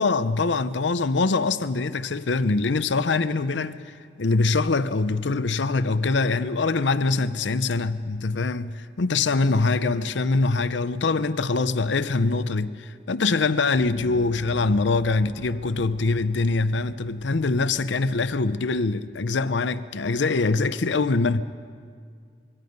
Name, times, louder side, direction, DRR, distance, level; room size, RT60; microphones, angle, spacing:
voice 1, 0.0-21.4, left 3 dB, 75° left, 0.7 m, -23 dB
Gong, 13.8-19.1, right 2 dB, 75° right, 1.1 m, -45 dB
25.5 x 23.0 x 5.4 m
head